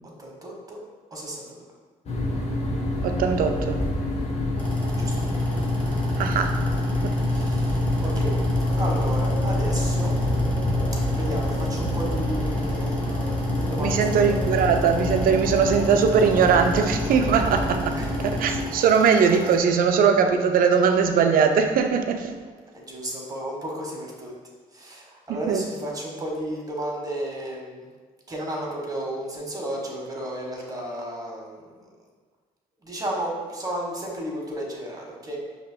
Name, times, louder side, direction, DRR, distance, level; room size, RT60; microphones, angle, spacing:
voice 1, 0.2-0.8 1.1-1.7 5.0-5.1 7.3-8.4 8.8-10.1 11.1-14.2 17.9-18.1 18.7-18.8 22.7-24.3 24.7-27.9 28.3-31.9 32.8-35.4, right 1 dB, 25° right, -2 dB, 1.3 m, -33 dB
sound 1, 2.1-18.6, left 1 dB, 45° left, 0.9 m, -26 dB
voice 2, 3.0-3.8 6.2-6.6 7.0-7.1 13.8-18.0 18.2-22.3 25.3-25.6, right 6 dB, 65° right, 6 dB, 0.4 m, -20 dB
sound 2, 4.6-19.6, right 1 dB, 10° left, 1.2 m, -39 dB
sound 3, 8.5-15.9, left 1 dB, 25° left, 0.5 m, -35 dB
5.2 x 2.9 x 2.2 m, 1.4 s
supercardioid pair, 60°, 16 cm